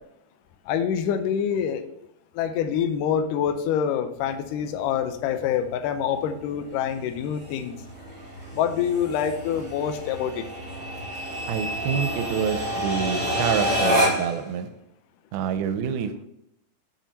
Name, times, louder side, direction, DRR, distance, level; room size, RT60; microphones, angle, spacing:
voice 1, 0.7-1.8 2.4-7.8 8.5-10.5, left 8 dB, 85° left, 8 dB, 1.9 m, -26 dB
sound 1, 4.2-14.4, equal, 40° right, 0.6 m, -29 dB
voice 2, 11.5-14.7 15.3-16.2, right 8 dB, 80° right, 9 dB, 2.4 m, -27 dB
7.5 x 5.5 x 4.1 m, 0.78 s
omnidirectional pair, 4.5 m